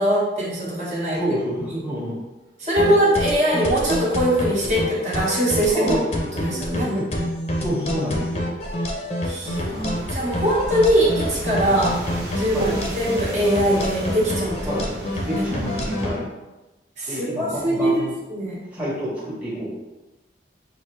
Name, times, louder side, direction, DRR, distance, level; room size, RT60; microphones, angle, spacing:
voice 1, 0.0-1.2 1.7-1.8 2.6-5.9 6.3-6.9 9.2-11.9 12.3-14.6 15.2-15.4 17.0-18.6, right 1 dB, 40° right, -6 dB, 1.1 m, -22 dB
voice 2, 1.2-2.2 2.8-3.1 5.7-6.0 6.9-7.1 7.6-8.5 9.7-10.0 11.7-11.8 12.5-12.8 14.7-14.9 15.3-16.3 17.1-18.1 18.7-19.7, equal, 10° right, -8 dB, 1.0 m, -28 dB
sound 1, 2.8-16.2, left 1 dB, 35° left, 0.6 m, -27 dB
sound 2, 9.4-16.1, right 1 dB, 65° right, 1.1 m, -34 dB
6.3 x 2.6 x 3.1 m, 1.1 s
head